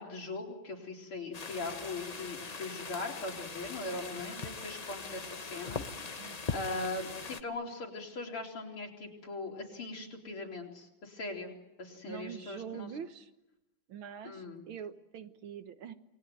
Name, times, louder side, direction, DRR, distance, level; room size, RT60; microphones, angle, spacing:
voice 1, 0.0-5.8 6.1-11.5 11.8-12.9 14.2-14.6, left 3 dB, 85° left, 0 dB, 4.8 m, -40 dB
sound 1, 1.3-7.4, left 4 dB, 45° left, 0.5 m, -41 dB
voice 2, 4.1-4.4 6.2-7.0 12.1-13.3 13.9-15.9, right 8 dB, 70° right, 10 dB, 2.0 m, -45 dB
28.5 x 20.0 x 9.4 m, 0.94 s
omnidirectional pair, 2.3 m